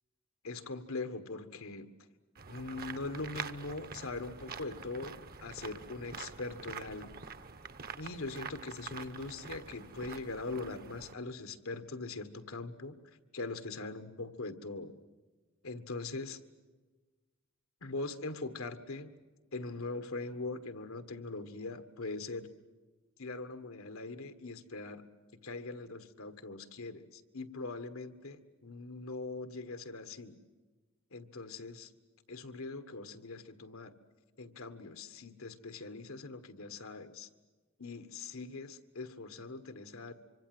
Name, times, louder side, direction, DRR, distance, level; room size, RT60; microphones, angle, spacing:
voice 1, 0.4-1.9 2.5-7.2 8.0-12.9 13.3-15.0 15.6-16.4 17.8-19.1 19.5-22.5 23.2-25.0 25.3-30.4 31.1-31.9 32.3-33.9 34.4-37.3 37.8-40.1, left 3 dB, 85° left, 10 dB, 1.6 m, -41 dB
sound 1, 2.3-11.1, right 5 dB, 45° right, 1.0 m, -46 dB
25.0 x 25.0 x 7.8 m, 1.3 s
head